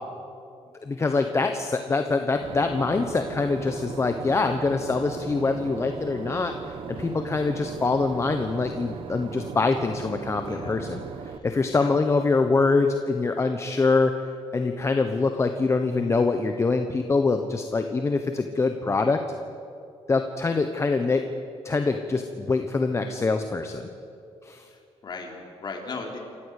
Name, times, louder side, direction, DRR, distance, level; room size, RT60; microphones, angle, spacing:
voice 1, 0.9-14.1 14.5-19.2 20.1-21.2 21.6-23.9 24.4-24.7, left 3 dB, 25° left, 6 dB, 1.1 m, -24 dB
Boat Water vehicle / Engine, 2.4-11.4, right 6 dB, 50° right, 1.1 m, -38 dB
voice 2, 10.5-10.8 11.3-12.0 24.7-26.2, left 4 dB, 40° left, 1 dB, 3.8 m, -38 dB
27.5 x 14.5 x 8.4 m, 2.6 s
cardioid pair, 130°, 11 cm